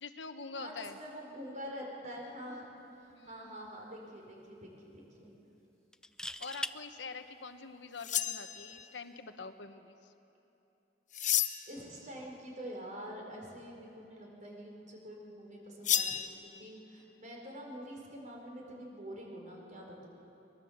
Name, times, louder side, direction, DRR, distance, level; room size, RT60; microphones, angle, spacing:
voice 1, 0.0-1.0 3.1-3.6 6.4-10.1 16.1-16.2, left 4 dB, 70° left, 8 dB, 1.1 m, -45 dB
voice 2, 0.6-2.7 3.0-5.3 11.7-20.1, equal, 45° right, -1 dB, 4.9 m, -46 dB
sound 1, 3.1-3.3 3.7-3.8 5.9-6.8 8.6-8.8, left 1 dB, 5° left, 0.5 m, -40 dB
sound 2, 8.0-8.9 11.1-11.8 15.8-16.3, left 10 dB, 45° left, 0.8 m, -31 dB
23.5 x 20.5 x 7.3 m, 2.9 s
head